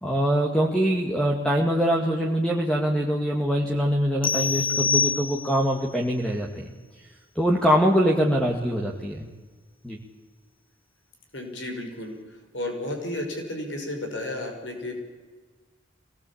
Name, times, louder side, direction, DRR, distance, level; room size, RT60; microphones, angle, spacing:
voice 1, 0.0-6.7 7.4-9.3 9.8-10.0, equal, 5° left, -1 dB, 2.0 m, -23 dB
sound 1, 4.2-5.8, left 5 dB, 30° left, 0.8 m, -25 dB
voice 2, 11.3-14.9, left 1 dB, 75° left, 3 dB, 5.6 m, -33 dB
24.0 x 19.0 x 8.7 m, 1.4 s
head